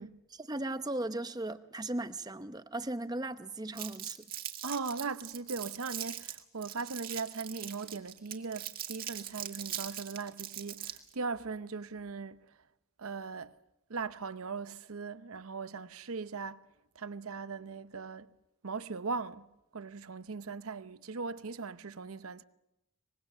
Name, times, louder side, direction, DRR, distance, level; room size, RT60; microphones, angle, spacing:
voice 1, 0.4-4.3, right 2 dB, 20° right, 0.8 m, -37 dB
Crumpling crinkling, 3.8-11.1, right 11 dB, 45° right, 1.7 m, -41 dB
voice 2, 4.6-12.5 13.0-13.5 13.9-16.7 17.0-18.3 18.6-22.4, right 4 dB, 85° right, 0.8 m, -39 dB
24.5 x 21.5 x 6.7 m
head